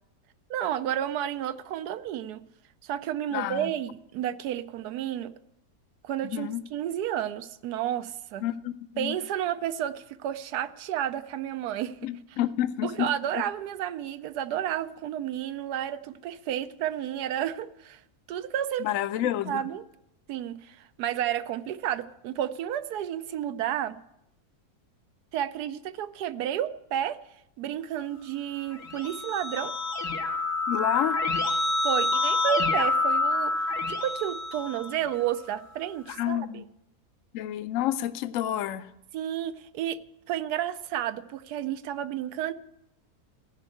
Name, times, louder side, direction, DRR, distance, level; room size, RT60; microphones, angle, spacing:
voice 1, 0.5-2.4 2.8-5.3 6.0-8.4 9.0-12.0 12.8-18.0 18.3-18.9 19.2-19.8 20.3-24.0 25.3-27.2 27.6-29.8 31.8-36.6 39.1-40.0 40.3-42.5, right 11 dB, 85° right, 1.2 m, -31 dB
voice 2, 3.3-3.7 6.2-6.6 8.4-9.2 12.0-13.1 13.3-13.4 18.8-19.6 30.7-31.2 36.1-36.6 37.3-38.9, left 12 dB, 65° left, 0.9 m, -29 dB
Keyboard (musical), 28.6-35.3, left 2 dB, 85° left, 1.8 m, -27 dB
15.0 x 5.3 x 8.5 m
omnidirectional pair, 1.6 m